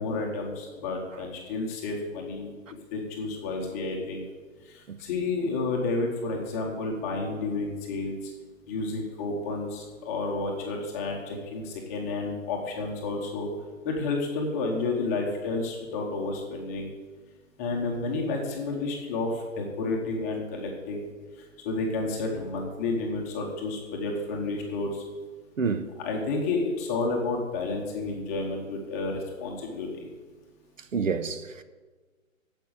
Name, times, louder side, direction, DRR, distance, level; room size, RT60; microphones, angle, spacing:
voice 1, 0.0-2.5 2.9-4.2 4.6-8.3 8.7-13.5 13.8-16.9 17.6-21.1 21.4-25.0 26.0-30.1, left 3 dB, 10° left, 0.9 m, -31 dB
voice 2, 25.6-25.9 30.9-31.6, right 5 dB, 65° right, 1.0 m, -28 dB
9.0 x 7.6 x 8.8 m
hypercardioid pair, 155°, 41 cm